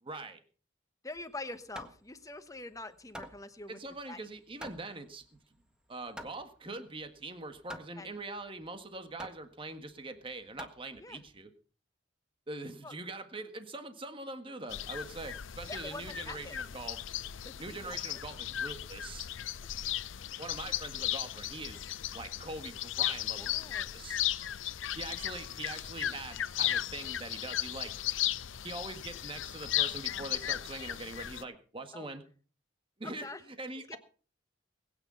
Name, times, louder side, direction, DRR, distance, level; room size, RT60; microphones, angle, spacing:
voice 1, 0.0-0.4 3.7-5.2 5.9-11.5 12.5-17.0 17.6-19.3 20.4-24.2 24.9-27.9 28.6-32.2 33.0-33.3 33.6-34.0, right 2 dB, 30° right, 8 dB, 1.6 m, -43 dB
voice 2, 1.0-3.8 4.1-4.2 8.0-8.1 11.0-11.2 12.8-13.0 15.7-16.6 17.4-18.0 20.2-20.4 23.4-23.9 31.9-32.1 33.0-33.4 33.9-34.0, left 2 dB, 15° left, 10 dB, 1.2 m, -44 dB
Hammer, 1.2-11.4, equal, 5° right, 1.6 m, -50 dB
sound 1, 14.7-31.4, left 12 dB, 85° left, 0.6 m, -36 dB
21.0 x 9.3 x 5.6 m, 0.41 s
head